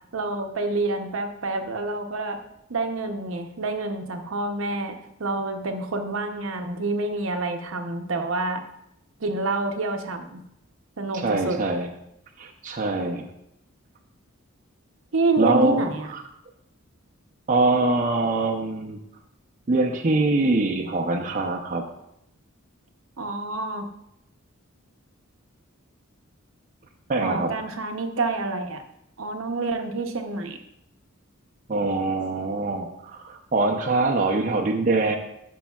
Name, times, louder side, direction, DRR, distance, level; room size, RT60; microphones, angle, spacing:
voice 1, 0.1-2.4 2.7-8.6 9.2-10.4 11.0-11.6 15.1-16.1 23.2-23.9 27.2-28.8 29.2-30.6, right 3 dB, 70° right, 6 dB, 0.7 m, -28 dB
voice 2, 11.1-11.9 12.4-13.3 15.4-15.8 16.1-16.2 17.5-19.0 19.7-21.8 27.1-27.5 31.7-35.2, right 2 dB, 40° right, 1 dB, 0.5 m, -23 dB
11.5 x 6.2 x 2.3 m, 0.79 s
head